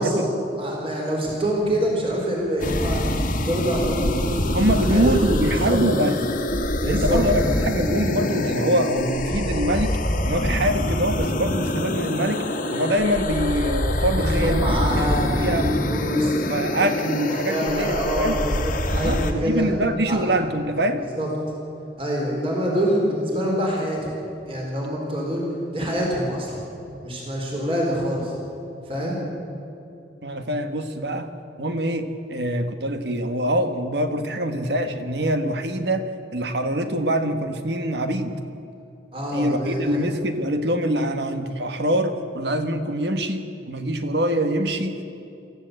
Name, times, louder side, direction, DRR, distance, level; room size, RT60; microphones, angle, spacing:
voice 1, 0.0-5.4 5.7-5.8 6.8-7.2 14.2-16.5 17.1-19.7 20.1-20.2 21.2-21.3 22.0-24.0 24.5-25.4 25.7-26.6 27.0-28.3 28.9-29.2 39.1-40.0, equal, 30° right, -2 dB, 4.1 m, -25 dB
sound 1, 2.6-19.3, left 1 dB, 45° left, 1.5 m, -25 dB
voice 2, 4.5-6.2 6.8-10.0 10.2-14.6 15.0-15.7 16.5-18.4 18.9-21.1 30.2-31.3 31.6-36.0 36.3-38.3 39.3-45.0, right 1 dB, 65° right, 8 dB, 1.5 m, -24 dB
23.0 x 14.5 x 7.9 m, 2.8 s
head